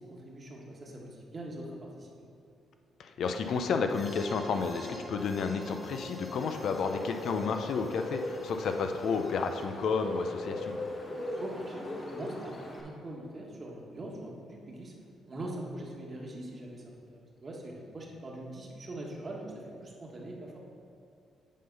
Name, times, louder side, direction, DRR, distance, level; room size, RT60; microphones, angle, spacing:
voice 1, 0.1-2.1 11.1-14.9 15.3-16.8 17.1-20.6, right 1 dB, 35° right, -1 dB, 1.4 m, -42 dB
voice 2, 3.0-10.8, left 5 dB, 65° left, 6 dB, 0.5 m, -31 dB
sound 1, 3.2-9.7, equal, 10° right, 0.9 m, -46 dB
Bird, 6.3-12.8, left 1 dB, 30° left, 1.2 m, -39 dB
8.5 x 3.8 x 5.3 m, 2.5 s
cardioid pair, 90°, 0 cm